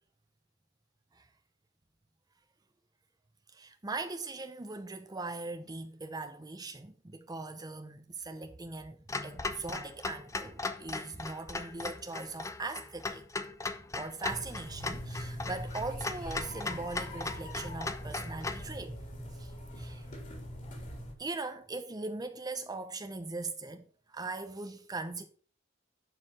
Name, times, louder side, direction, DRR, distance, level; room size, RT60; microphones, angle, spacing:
voice 1, 3.5-13.2 14.0-18.9 19.3-20.1 21.2-25.3, right 3 dB, 20° right, 0.7 m, -40 dB
Clock, 9.1-18.7, left 3 dB, 15° left, 0.7 m, -38 dB
sound 1, 14.3-21.1, equal, 40° left, 3.2 m, -42 dB
11.0 x 5.0 x 6.0 m
head